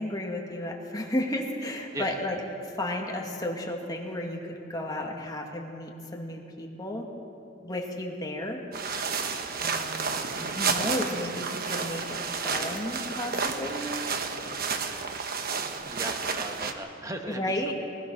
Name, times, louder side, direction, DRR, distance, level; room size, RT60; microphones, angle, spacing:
voice 1, 0.0-2.4 2.6-7.1 7.6-8.6 9.6-13.9 17.3-17.7, left 1 dB, 20° left, 0 dB, 2.3 m, -33 dB
sound 1, 8.7-16.7, right 5 dB, 50° right, 1.2 m, -31 dB
voice 2, 15.8-17.5, right 1 dB, 15° right, 4 dB, 1.5 m, -37 dB
20.5 x 20.0 x 6.4 m, 2.7 s
head